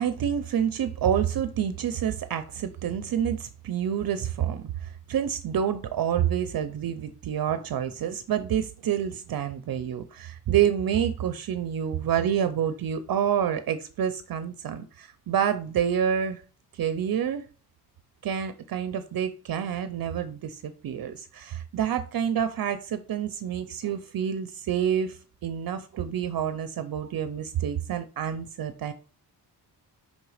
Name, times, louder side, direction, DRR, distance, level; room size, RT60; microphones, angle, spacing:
voice 1, 0.0-16.4 16.7-17.4 18.2-28.9, right 9 dB, 60° right, 0.5 m, -28 dB
5.3 x 4.0 x 4.8 m
wide cardioid pair, 135°, 40 cm